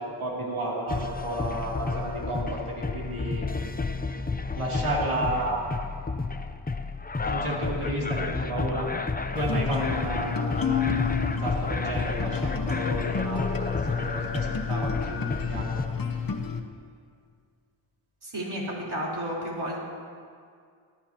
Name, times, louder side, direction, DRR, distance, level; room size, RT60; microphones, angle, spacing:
voice 1, 0.0-3.4 4.6-5.6 7.2-8.9 9.3-11.1 11.4-15.8, right 1 dB, 85° right, -5 dB, 3.1 m, -32 dB
sound 1, 0.9-15.9, left 3 dB, 20° left, 0.5 m, -31 dB
sound 2, 9.4-16.6, left 6 dB, 45° left, 1.0 m, -30 dB
voice 2, 18.2-18.6 18.9-19.8, equal, 55° right, -5 dB, 4.1 m, -32 dB
21.0 x 14.0 x 2.9 m, 2.1 s
wide cardioid pair, 75°, 48 cm